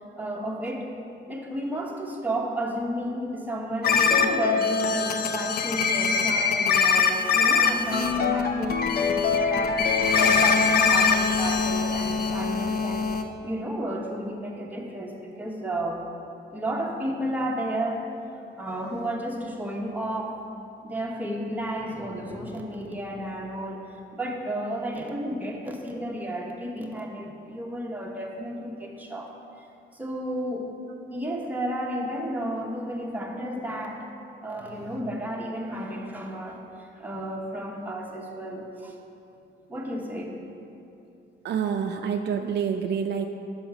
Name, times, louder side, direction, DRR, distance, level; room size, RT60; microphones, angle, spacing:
voice 1, 0.2-0.9 1.3-13.1 13.4-16.0 16.5-18.1 18.6-20.4 20.8-29.3 29.6-29.7 29.9-30.7 31.1-34.1 34.4-38.9 39.7-40.4, right 1 dB, 10° right, -1 dB, 1.0 m, -32 dB
sound 1, 3.8-13.2, left 5 dB, 50° left, 0.5 m, -23 dB
voice 2, 41.4-43.3, right 7 dB, 60° right, 5 dB, 0.4 m, -27 dB
5.5 x 5.5 x 5.8 m, 2.7 s
cardioid pair, 90°, 20 cm